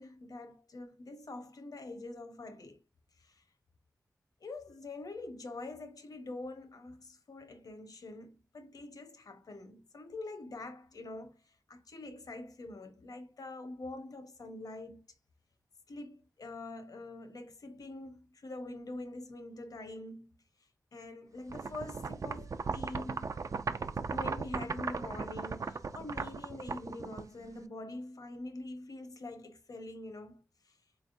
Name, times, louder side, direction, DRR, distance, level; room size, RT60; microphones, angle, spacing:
voice 1, 0.0-2.8 3.2-3.4 4.4-11.4 11.7-15.0 15.9-20.4 20.9-23.3 24.1-30.4, left 2 dB, 75° left, 0.9 m, -45 dB
sound 1, 21.5-27.6, right 4 dB, 55° right, 0.4 m, -37 dB
4.1 x 3.4 x 2.6 m
wide cardioid pair, 100°, 6 cm